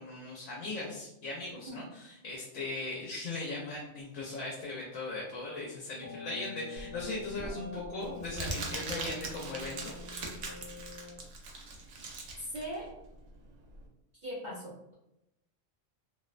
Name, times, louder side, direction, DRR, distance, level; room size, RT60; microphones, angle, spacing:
voice 1, 0.0-9.9, left 2 dB, 85° left, -3 dB, 1.0 m, -39 dB
sound 1, 6.0-11.2, left 3 dB, 50° left, 0.6 m, -46 dB
Crumpling crinkling, 6.8-13.8, right 2 dB, 85° right, 1.0 m, -41 dB
voice 2, 7.4-7.8 12.4-12.9 14.2-14.9, equal, 55° right, -7 dB, 0.5 m, -40 dB
2.6 x 2.1 x 2.4 m, 0.85 s
omnidirectional pair, 1.4 m